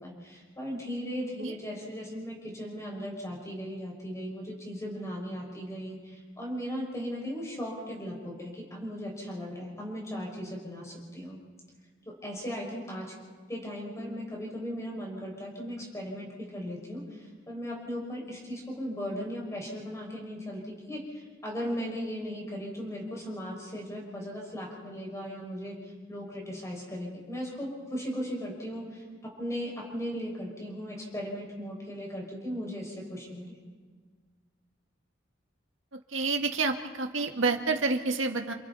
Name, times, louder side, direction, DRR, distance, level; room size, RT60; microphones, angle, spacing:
voice 1, 0.0-11.4 12.1-13.1 13.5-25.8 26.1-29.0 29.4-33.5, equal, 15° left, -2 dB, 6.0 m, -37 dB
voice 2, 35.9-38.5, right 3 dB, 80° right, 3 dB, 1.9 m, -29 dB
29.5 x 25.5 x 4.2 m, 1.5 s
head